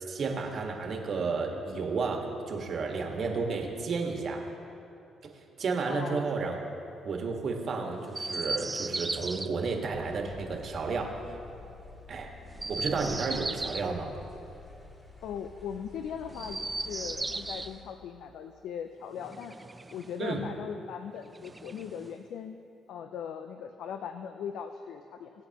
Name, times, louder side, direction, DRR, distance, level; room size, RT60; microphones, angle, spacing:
voice 1, 0.1-4.4 5.6-6.6 7.0-11.1 12.1-12.3 12.7-14.1 20.2-20.4, right 4 dB, 55° right, 2 dB, 1.5 m, -32 dB
voice 2, 5.9-6.3 15.2-19.6 19.9-22.6 22.9-25.3, left 7 dB, 80° left, 7 dB, 0.4 m, -39 dB
Chirp tweet, 8.1-9.5 12.5-13.9 16.3-17.7 19.1-20.2 21.3-22.2, right 3 dB, 20° right, 0.4 m, -36 dB
sound 1, 9.9-17.8, left 3 dB, 30° left, 3.0 m, -50 dB
21.5 x 8.4 x 3.0 m, 2.8 s
cardioid pair, 90°, 0 cm